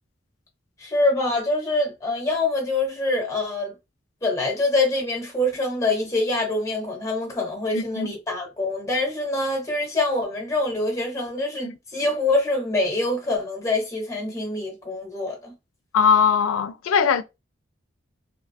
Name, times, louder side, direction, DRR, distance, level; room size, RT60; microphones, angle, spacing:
voice 1, 0.8-3.7 4.2-15.5, left 2 dB, 15° left, 0.8 m, -25 dB
voice 2, 7.7-8.1 11.6-11.8 15.9-17.2, left 6 dB, 90° left, 0.4 m, -20 dB
2.6 x 2.2 x 2.5 m
head